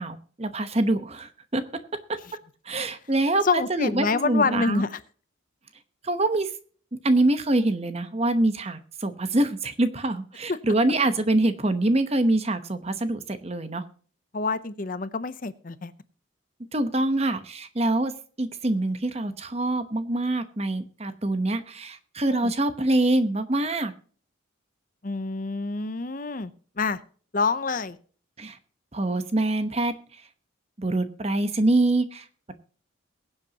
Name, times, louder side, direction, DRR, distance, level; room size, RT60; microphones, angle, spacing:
voice 1, 0.0-1.6 2.7-4.8 6.0-6.5 7.0-13.8 16.7-18.1 18.4-23.9 28.4-28.6 28.9-29.9 30.8-32.5, right 2 dB, 30° right, 10 dB, 1.0 m, -25 dB
voice 2, 3.4-5.0 10.5-10.6 14.3-15.9 22.2-22.5 25.0-26.5 26.8-27.0 27.3-28.0, left 4 dB, 40° left, 14 dB, 0.6 m, -27 dB
22.0 x 8.0 x 2.9 m, 0.43 s
head